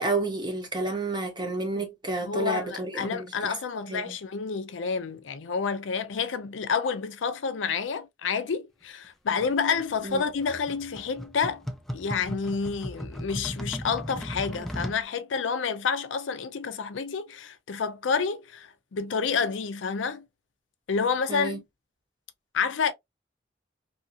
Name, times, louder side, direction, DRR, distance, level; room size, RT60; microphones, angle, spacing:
voice 1, 0.0-3.5 3.9-4.2 10.0-10.2 21.3-21.6, right 2 dB, 25° right, 1.0 m, -30 dB
voice 2, 2.2-11.6 11.9-20.3 20.9-21.6 22.5-22.9, left 5 dB, 90° left, 0.5 m, -29 dB
sound 1, 9.4-15.0, equal, ahead, 0.4 m, -37 dB
2.8 x 2.7 x 2.4 m
head